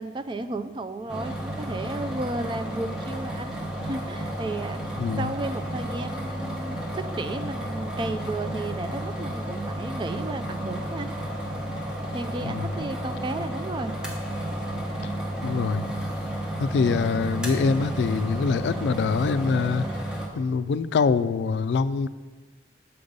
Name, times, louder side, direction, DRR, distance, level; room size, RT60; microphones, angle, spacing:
voice 1, 0.0-3.5 3.8-4.8 5.2-11.1 12.1-14.0, right 2 dB, 25° right, 9 dB, 0.3 m, -33 dB
sound 1, 1.1-20.3, right 1 dB, 5° right, 0.9 m, -32 dB
voice 2, 5.0-5.3 12.4-12.7 15.4-15.9 16.6-22.1, left 5 dB, 75° left, 14 dB, 0.3 m, -25 dB
6.9 x 5.3 x 5.2 m, 1.3 s
head